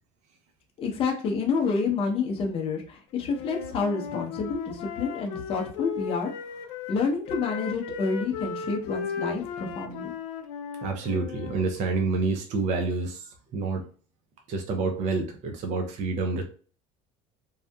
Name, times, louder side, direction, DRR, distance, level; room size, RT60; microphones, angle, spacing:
voice 1, 0.8-6.3 6.9-10.1, left 4 dB, 35° left, 1 dB, 0.7 m, -28 dB
Wind instrument woodwind instrument, 3.3-7.0 7.3-11.7, left 7 dB, 80° left, 0.4 m, -36 dB
voice 2, 10.8-13.9 14.5-16.4, right 3 dB, 45° right, 4 dB, 0.5 m, -28 dB
2.6 x 2.4 x 2.2 m, 0.41 s
cardioid pair, 135°, 17 cm